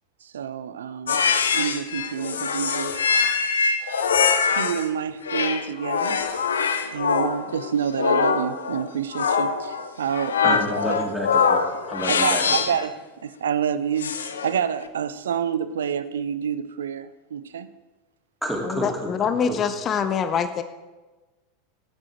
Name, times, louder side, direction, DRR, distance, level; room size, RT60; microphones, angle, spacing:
voice 1, 0.2-1.3 1.5-3.1 4.4-6.2 6.9-10.6 10.9-11.0 12.1-17.7, right 8 dB, 70° right, 13 dB, 0.5 m, -28 dB
sound 1, 1.1-4.9 5.2-12.9 14.0-14.6, left 6 dB, 70° left, 0.7 m, -23 dB
voice 2, 10.4-12.4 18.4-19.6, equal, ahead, -2 dB, 2.6 m, -30 dB
voice 3, 18.6-20.6, left 7 dB, 30° left, 10 dB, 0.6 m, -24 dB
13.5 x 9.0 x 4.3 m, 1.2 s
figure-of-eight pair, 85°, 0 cm